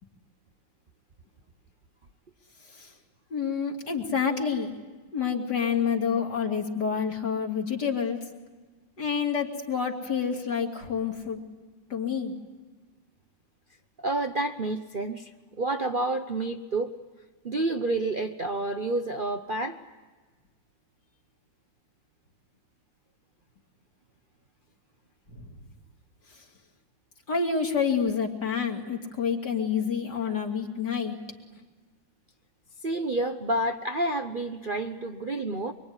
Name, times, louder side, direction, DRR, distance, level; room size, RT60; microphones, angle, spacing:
voice 1, 3.3-4.7 5.1-8.2 9.0-11.4 11.9-12.3 27.3-31.2, left 6 dB, 60° left, 2 dB, 3.3 m, -28 dB
voice 2, 14.0-15.3 15.6-16.9 17.4-19.8 32.8-35.7, right 2 dB, 40° right, 4 dB, 0.9 m, -29 dB
25.0 x 24.0 x 9.7 m, 1.3 s
omnidirectional pair, 2.0 m